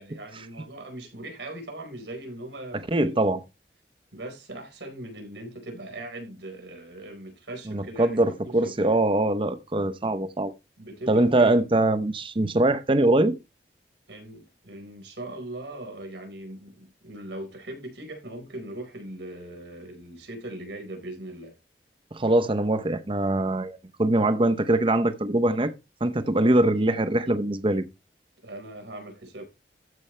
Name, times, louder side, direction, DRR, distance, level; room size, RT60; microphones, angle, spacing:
voice 1, 0.0-3.1 4.1-9.0 10.8-11.6 14.1-21.5 28.4-29.4, right 1 dB, 90° right, 4.6 m, -40 dB
voice 2, 2.9-3.4 7.7-10.5 11.1-13.4 22.1-25.7 26.0-27.8, right 1 dB, 30° right, 0.8 m, -22 dB
14.0 x 5.5 x 3.3 m
head